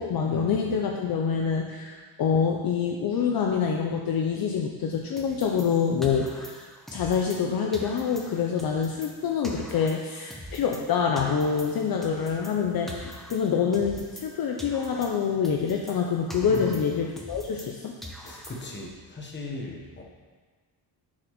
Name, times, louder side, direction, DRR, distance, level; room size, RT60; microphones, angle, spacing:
voice 1, 0.0-6.6 6.9-17.9, left 6 dB, 55° left, 1 dB, 0.6 m, -26 dB
sound 1, 5.2-7.5 7.7-10.9 11.2-14.3 14.6-17.7 18.0-18.9, equal, ahead, 0.5 m, -43 dB
voice 2, 16.5-16.8 18.2-20.0, left 2 dB, 25° left, 0 dB, 1.0 m, -37 dB
9.6 x 4.1 x 3.0 m, 1.4 s
cardioid pair, 130°, 43 cm